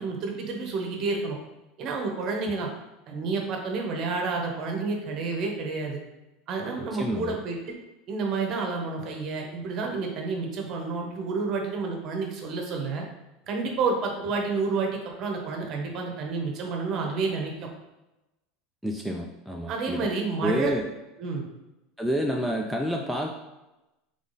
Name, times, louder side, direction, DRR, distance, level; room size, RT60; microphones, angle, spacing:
voice 1, 0.0-1.4 1.8-2.7 3.1-6.0 6.5-7.7 8.1-13.0 13.5-17.5 19.7-20.7 21.2-21.4, right 4 dB, 45° right, 2 dB, 1.0 m, -30 dB
voice 2, 7.0-7.4 18.8-20.1 20.4-20.8 22.0-23.3, equal, ahead, 0 dB, 0.4 m, -28 dB
3.5 x 3.5 x 4.0 m, 0.98 s
supercardioid pair, 140°, 0 cm